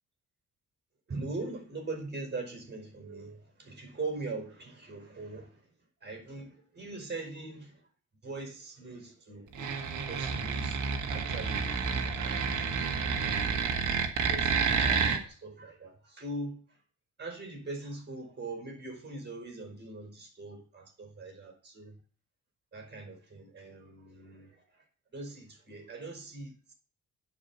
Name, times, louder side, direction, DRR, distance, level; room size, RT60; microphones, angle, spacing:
voice 1, 1.1-5.6 6.0-7.8 8.2-9.8 10.1-13.1 14.3-16.6 17.2-21.9 22.7-24.8 25.1-26.7, right 3 dB, 35° right, 4.9 m, -41 dB
sound 1, 9.5-15.2, right 5 dB, 70° right, 1.8 m, -29 dB
9.7 x 5.2 x 7.0 m
cardioid pair, 90°, 30 cm